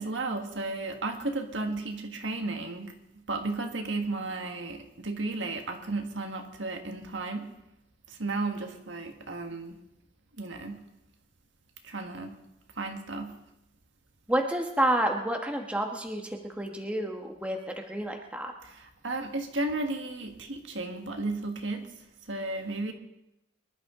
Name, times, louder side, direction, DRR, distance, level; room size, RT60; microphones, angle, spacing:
voice 1, 0.0-3.0 3.3-7.5 8.2-9.7 10.4-10.8 11.8-12.4 12.8-13.4 18.6-21.9 22.3-22.9, right 2 dB, 70° right, 4 dB, 1.7 m, -34 dB
voice 2, 14.3-18.5, right 1 dB, 5° right, 2 dB, 1.4 m, -29 dB
24.0 x 12.0 x 3.8 m, 0.86 s
head